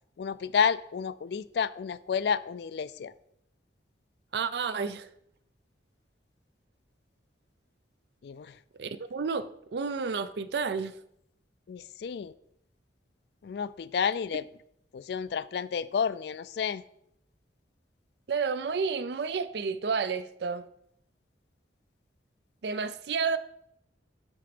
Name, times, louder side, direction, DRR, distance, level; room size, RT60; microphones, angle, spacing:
voice 1, 0.2-3.1 8.2-8.5 11.7-12.3 13.4-14.5 14.9-16.8, left 6 dB, 60° left, 0.3 m, -30 dB
voice 2, 4.3-5.1 8.8-10.9 18.3-20.6 22.6-23.4, right 5 dB, 65° right, 0.4 m, -31 dB
8.9 x 3.8 x 5.1 m
head